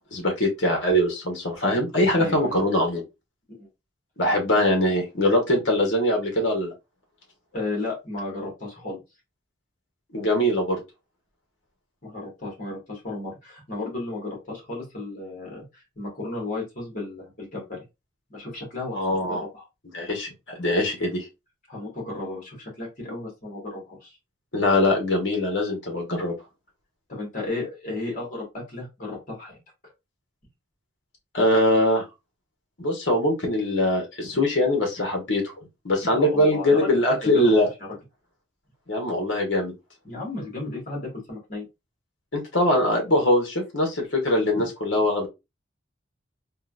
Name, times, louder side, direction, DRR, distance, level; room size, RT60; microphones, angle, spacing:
voice 1, 0.1-3.0 4.2-6.7 10.1-10.8 18.9-19.4 19.9-20.3 20.6-21.3 24.5-26.3 31.3-32.0 32.8-35.5 35.8-37.7 38.9-39.7 42.3-45.3, left 1 dB, 60° left, 1.1 m, -22 dB
voice 2, 2.2-2.6 3.5-3.7 7.5-9.0 12.0-17.8 18.3-19.6 21.7-24.2 27.1-29.6 36.1-37.5 40.0-41.7, left 2 dB, 40° left, 1.7 m, -34 dB
3.7 x 2.4 x 2.4 m
head